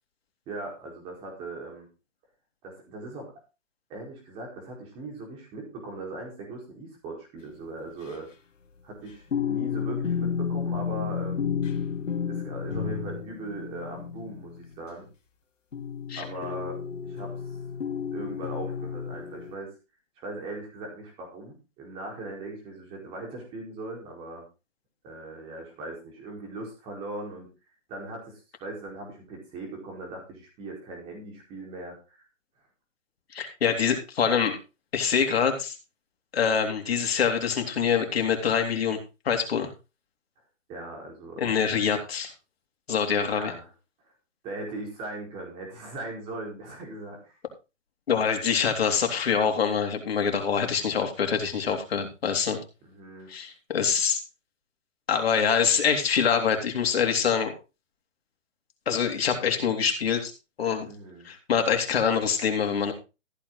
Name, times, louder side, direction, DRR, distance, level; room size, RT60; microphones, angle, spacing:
voice 1, 0.5-1.9 2.6-3.3 3.9-8.3 8.8-11.5 12.2-15.1 16.2-17.3 18.1-19.7 20.2-24.4 25.0-27.5 27.9-32.2 40.7-41.6 43.3-43.7 44.4-47.4 52.8-53.3 60.9-61.3, right 2 dB, 15° right, 1 dB, 4.6 m, -39 dB
sound 1, 8.7-14.7 15.7-19.5, left 7 dB, 75° left, 2.5 m, -32 dB
voice 2, 33.3-34.6 34.9-35.8 36.3-39.0 39.3-39.7 41.4-42.3 42.9-43.5 48.1-52.6 53.3-54.2 55.1-57.5 58.9-60.3 60.6-60.9 61.3-62.9, left 7 dB, 50° left, 4 dB, 3.7 m, -25 dB
15.0 x 8.8 x 4.0 m, 0.29 s
hypercardioid pair, 165°, 38 cm